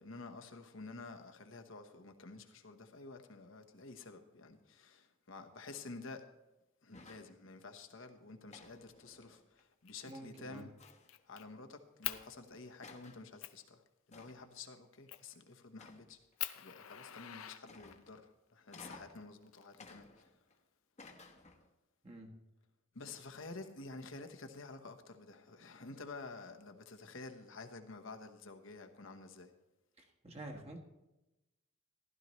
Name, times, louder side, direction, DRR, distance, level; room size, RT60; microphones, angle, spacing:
voice 1, 0.0-6.2 6.8-10.7 11.2-16.2 16.6-20.3 22.9-29.5, left 3 dB, 65° left, 1.1 m, -50 dB
sound 1, 6.9-7.4 8.5-9.6 10.8-11.3 12.2-12.3 12.8-13.3 14.1-14.6 15.8-16.3 17.7-18.2 18.7-19.3 19.8-20.6 21.0-21.7, left 3 dB, 35° left, 1.1 m, -56 dB
Fire, 9.9-10.1 10.5-11.4 12.0-12.2 12.8-12.9 13.4-13.6 15.1-15.4 15.9-16.0 16.4-18.2 19.2-20.2, left 14 dB, 85° left, 0.6 m, -43 dB
voice 2, 10.0-10.6 22.0-22.3 30.0-30.8, right 1 dB, 30° right, 1.5 m, -49 dB
15.0 x 12.0 x 3.2 m
head